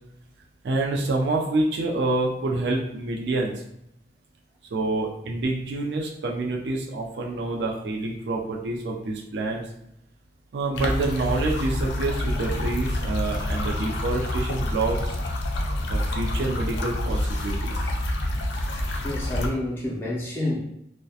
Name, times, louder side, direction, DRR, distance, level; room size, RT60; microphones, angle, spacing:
voice 1, 0.6-3.5 4.7-9.7 10.5-15.2 15.9-17.7, right 2 dB, 80° right, -1 dB, 0.4 m, -27 dB
sound 1, 10.7-19.5, left 1 dB, 85° left, 0.4 m, -27 dB
voice 2, 19.0-20.6, left 1 dB, 15° left, -5 dB, 0.4 m, -28 dB
2.7 x 2.1 x 2.3 m, 0.77 s
head